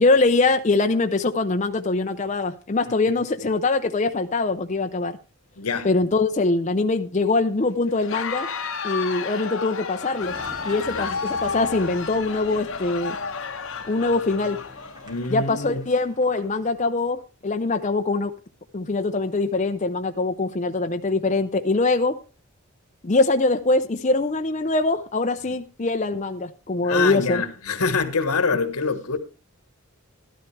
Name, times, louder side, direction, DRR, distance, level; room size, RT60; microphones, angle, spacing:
voice 1, 0.0-5.2 5.8-8.5 8.8-10.4 10.6-13.2 13.9-14.6 15.3-18.3 18.7-22.2 23.0-27.4, left 3 dB, 30° left, 0.5 m, -23 dB
voice 2, 5.6-5.9 10.9-11.2 15.0-15.8 26.8-29.2, left 4 dB, 85° left, 1.4 m, -25 dB
Crowd, 7.9-15.4, left 5 dB, 65° left, 1.1 m, -32 dB
Car passing by / Engine, 10.2-16.7, equal, 20° right, 2.6 m, -45 dB
13.0 x 12.0 x 3.3 m
head